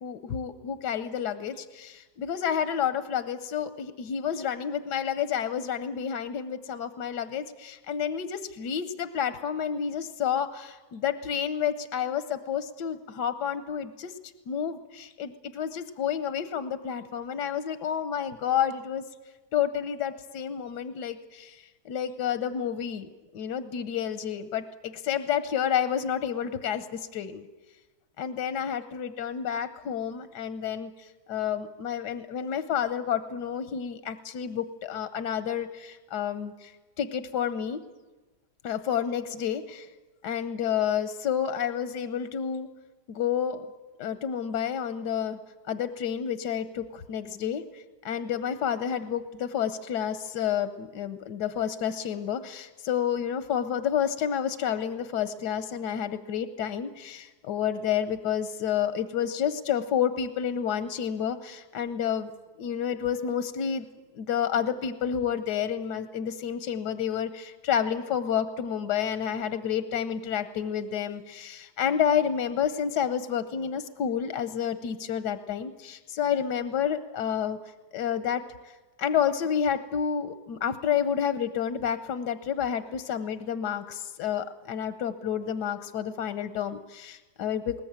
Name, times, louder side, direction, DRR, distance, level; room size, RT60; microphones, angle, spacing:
voice 1, 0.0-14.1 14.5-19.0 19.5-27.4 28.2-36.7 37.0-37.8 38.6-39.9 40.2-42.7 43.1-43.6 44.0-45.4 45.7-62.3 62.6-63.9 64.1-77.6 77.9-78.4 79.0-87.8, left 8 dB, 85° left, 12 dB, 1.5 m, -30 dB
21.0 x 19.5 x 8.8 m, 1.3 s
omnidirectional pair, 1.7 m